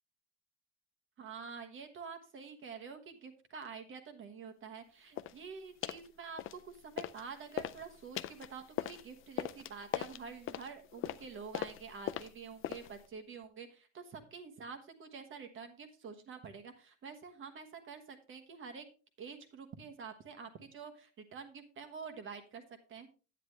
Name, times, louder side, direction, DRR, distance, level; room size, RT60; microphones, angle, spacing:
voice 1, 1.2-18.9 19.2-22.6 22.9-23.1, right 5 dB, 35° right, 7 dB, 1.3 m, -48 dB
sound 1, 5.2-5.4 5.8-6.1 6.4-7.2 7.5-13.1, left 12 dB, 35° left, 0.5 m, -40 dB
9.9 x 9.9 x 3.3 m, 0.34 s
cardioid pair, 165°, 36 cm